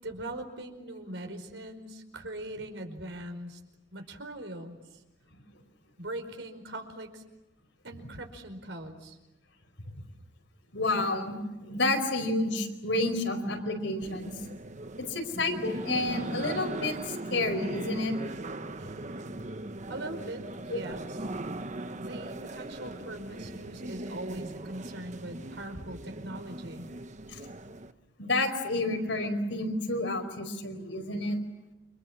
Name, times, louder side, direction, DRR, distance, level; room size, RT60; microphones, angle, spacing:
voice 1, 0.0-3.6 3.9-5.0 6.0-7.2 7.8-9.2 18.8-19.4 19.9-21.2 22.0-26.9, right 1 dB, 80° right, 6 dB, 5.0 m, -41 dB
voice 2, 10.7-14.3 15.0-18.2 20.7-20.8 27.3-27.4 28.2-31.4, left 2 dB, 85° left, 6 dB, 4.9 m, -30 dB
sound 1, 14.0-27.9, right 2 dB, 40° right, 1.0 m, -39 dB
29.5 x 26.0 x 7.4 m, 0.99 s
head